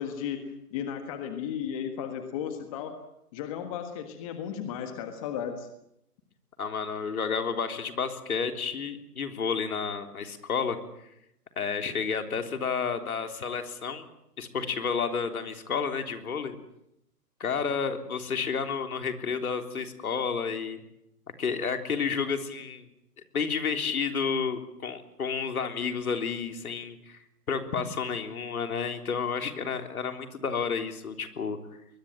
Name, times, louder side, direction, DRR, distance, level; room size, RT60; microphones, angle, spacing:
voice 1, 0.0-3.0 3.3-5.7, left 8 dB, 20° left, 7 dB, 1.6 m, -35 dB
voice 2, 6.6-10.8 11.6-14.1 14.4-16.6 17.4-20.8 21.4-22.9 23.3-27.2 27.5-31.6, left 6 dB, 65° left, 6 dB, 3.7 m, -31 dB
22.0 x 21.0 x 9.0 m, 0.81 s
hypercardioid pair, 155°, 47 cm